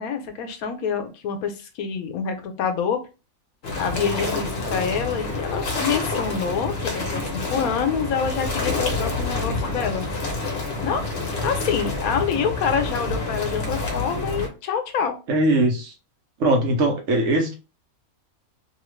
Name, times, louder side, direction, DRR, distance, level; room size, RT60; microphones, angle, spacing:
voice 1, 0.0-3.0 3.8-10.1 10.8-11.0 11.4-15.2, left 6 dB, 90° left, 7 dB, 1.1 m, -26 dB
sound 1, 3.6-14.5, left 3 dB, 50° left, 1.0 m, -28 dB
voice 2, 15.3-15.9 16.4-17.5, right 1 dB, 65° right, 2 dB, 1.0 m, -20 dB
2.8 x 2.4 x 3.1 m, 0.30 s
omnidirectional pair, 1.5 m